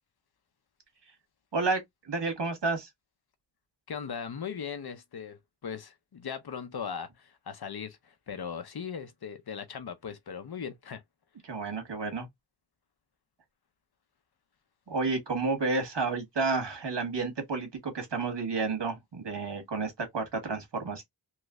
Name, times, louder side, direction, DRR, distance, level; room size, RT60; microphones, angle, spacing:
voice 1, 1.5-2.9 11.4-12.3 14.9-21.0, right 3 dB, 70° right, 1.4 m, -31 dB
voice 2, 3.9-11.0, left 7 dB, 60° left, 0.7 m, -39 dB
3.1 x 3.0 x 2.4 m
wide cardioid pair, 90°, 44 cm